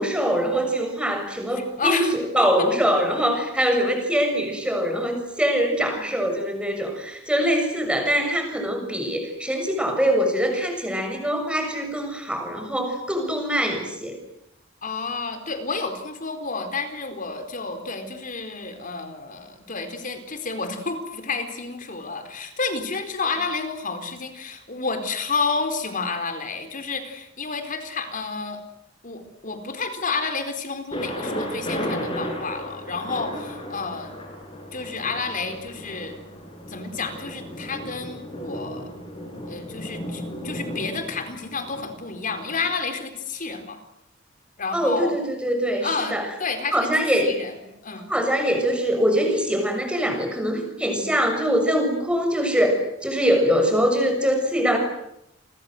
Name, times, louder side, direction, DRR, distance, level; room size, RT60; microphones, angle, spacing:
voice 1, 0.0-14.2 44.7-46.3 46.7-47.4 48.1-54.8, equal, 5° right, 4 dB, 7.0 m, -23 dB
voice 2, 1.5-2.1 2.4-2.7 14.8-28.6 29.0-34.2 34.7-36.2 36.7-38.9 39.5-43.8 44.6-45.1 45.8-47.5 47.8-48.1, left 4 dB, 45° left, 8 dB, 4.4 m, -30 dB
Thunder, 30.9-42.7, equal, 25° left, 7.6 m, -34 dB
29.5 x 24.0 x 7.9 m, 0.80 s
head